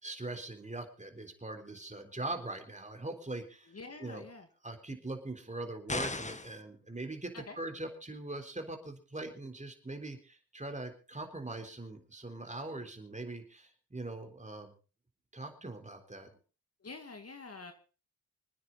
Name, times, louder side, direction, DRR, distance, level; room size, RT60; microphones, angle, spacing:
voice 1, 0.0-3.7 4.0-4.3 4.6-14.7 15.3-16.3, right 2 dB, 20° right, 5 dB, 3.7 m, -41 dB
voice 2, 3.7-4.5 7.3-7.6 16.8-17.7, left 3 dB, 40° left, 7 dB, 2.0 m, -46 dB
sound 1, 5.9-6.6, left 2 dB, 20° left, 1.4 m, -36 dB
26.0 x 9.6 x 4.0 m, 0.36 s
cardioid pair, 55°, 38 cm